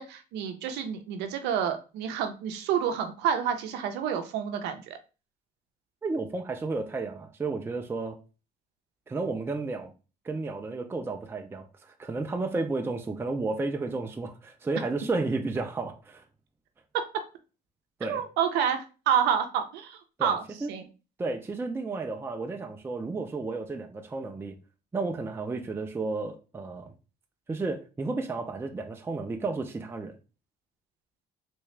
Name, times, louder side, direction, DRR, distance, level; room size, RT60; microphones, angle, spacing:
voice 1, 0.0-5.0 16.9-17.0 18.0-20.4 20.7-20.8, right 8 dB, 90° right, 0.6 m, -29 dB
voice 2, 6.0-8.2 9.1-9.9 10.2-16.2 18.0-18.2 20.2-20.7 21.2-24.6 24.9-26.9 27.5-30.2, right 3 dB, 15° right, 0.4 m, -32 dB
3.4 x 2.7 x 3.2 m
cardioid pair, 110°, 17 cm